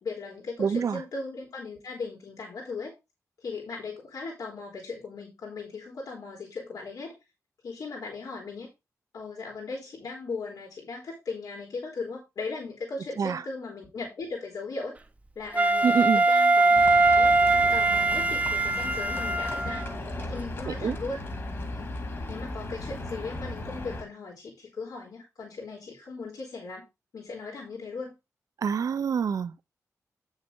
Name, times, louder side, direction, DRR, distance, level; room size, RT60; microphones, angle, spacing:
voice 1, 0.0-2.9 3.4-7.1 7.6-8.7 9.1-14.9 15.3-17.4 17.7-19.9 20.2-26.8 27.1-28.1, left 3 dB, 85° left, 3.4 m, -38 dB
voice 2, 0.6-1.0 13.2-13.4 15.8-16.2 20.7-21.0 28.6-29.6, right 6 dB, 65° right, 0.7 m, -26 dB
Wind instrument woodwind instrument, 15.5-19.8, right 3 dB, 25° right, 0.8 m, -22 dB
Livestock farm animals working animals, 16.7-24.0, left 1 dB, 45° left, 2.2 m, -36 dB
9.0 x 6.5 x 3.7 m
wide cardioid pair, 170°, 6 cm